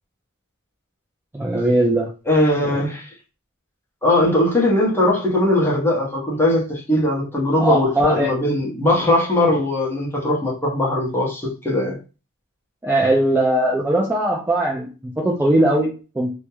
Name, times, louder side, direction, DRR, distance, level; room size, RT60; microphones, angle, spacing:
voice 1, 1.3-2.1 7.6-8.3 12.8-16.3, right 1 dB, 10° right, 0.3 m, -19 dB
voice 2, 2.3-3.1 4.0-12.0, left 1 dB, 10° left, 0.7 m, -19 dB
2.2 x 2.1 x 2.8 m
head